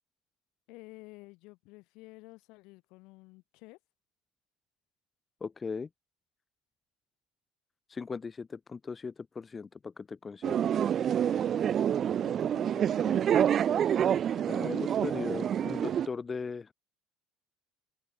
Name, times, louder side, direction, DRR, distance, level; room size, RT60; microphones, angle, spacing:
voice 1, 0.7-3.8 11.3-13.5, left 24 dB, 55° left, 5.3 m, -52 dB
voice 2, 5.4-5.9 7.9-10.7 14.5-16.7, left 5 dB, 25° left, 2.2 m, -38 dB
sound 1, 10.4-16.1, right 9 dB, 40° right, 0.5 m, -27 dB
open air
figure-of-eight pair, 65°, 0 cm